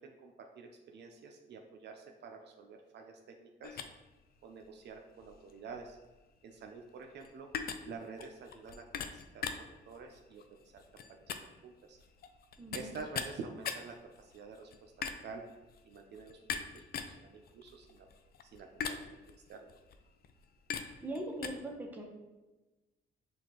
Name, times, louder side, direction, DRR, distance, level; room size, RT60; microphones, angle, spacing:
voice 1, 0.0-3.8 4.4-6.0 6.4-7.5 7.9-8.8 9.1-10.8 11.1-11.3 11.6-12.0 12.7-15.4 15.8-18.1 18.5-19.2 19.5-19.6, right 4 dB, 60° right, 3 dB, 0.5 m, -48 dB
sound 1, 3.6-21.5, left 6 dB, 50° left, 0.4 m, -43 dB
voice 2, 12.6-12.9 21.0-22.0, right 1 dB, 10° right, 0 dB, 0.8 m, -40 dB
6.3 x 2.5 x 3.0 m, 1.1 s
cardioid pair, 90°, 20 cm